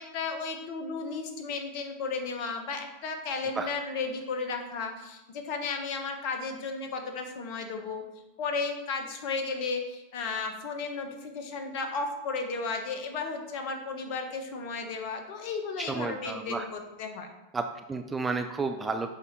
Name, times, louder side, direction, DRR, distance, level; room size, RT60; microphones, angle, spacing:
voice 1, 0.0-8.0 8.4-17.3, left 4 dB, 45° left, 5 dB, 1.2 m, -34 dB
voice 2, 15.8-16.6 17.5-19.1, right 4 dB, 15° right, 6 dB, 0.5 m, -32 dB
6.9 x 5.1 x 4.5 m, 1.0 s
figure-of-eight pair, 90°, 0 cm